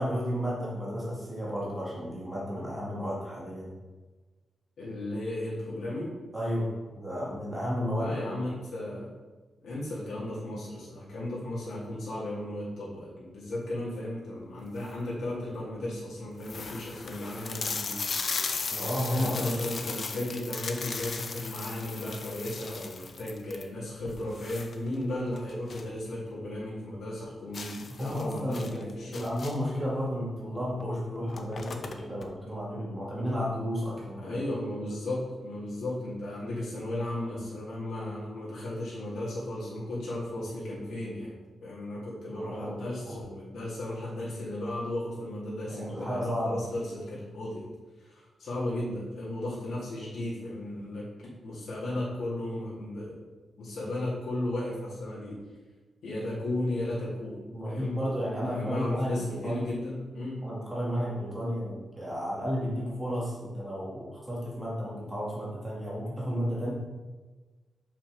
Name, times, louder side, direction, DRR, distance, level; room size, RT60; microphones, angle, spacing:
voice 1, 0.0-3.7 6.3-8.4 18.7-19.6 28.0-34.4 42.3-43.2 45.7-46.7 57.5-59.7 60.4-66.7, equal, 10° right, -6 dB, 2.3 m, -32 dB
voice 2, 4.8-6.2 8.0-9.1 9.6-18.0 19.1-29.3 34.2-41.3 41.6-47.7 48.0-51.1 51.4-53.2 53.6-55.4 56.0-58.0 58.5-60.5, left 1 dB, 75° left, -7 dB, 2.5 m, -35 dB
sound 1, 14.6-15.1 15.7-15.8 16.0-16.1 16.4-26.0 26.3-26.4 26.8-26.9 27.5-29.8 30.7-30.9 31.1-32.3, left 4 dB, 45° left, 0.6 m, -37 dB
6.2 x 5.9 x 4.9 m, 1.3 s
wide cardioid pair, 145°, 0 cm